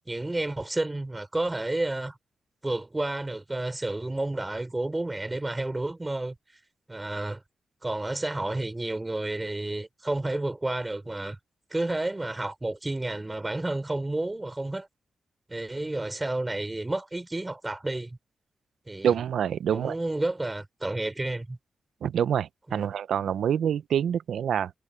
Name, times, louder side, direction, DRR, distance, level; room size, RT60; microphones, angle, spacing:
voice 1, 0.1-2.2 2.6-6.3 6.9-7.4 7.8-11.4 11.7-14.9 15.5-18.2 18.9-19.1 19.7-21.6 22.7-22.9, right 2 dB, 20° right, 4.6 m, -31 dB
voice 2, 19.0-20.0 22.0-24.7, right 9 dB, 85° right, 0.5 m, -26 dB
cardioid pair, 65°, 0 cm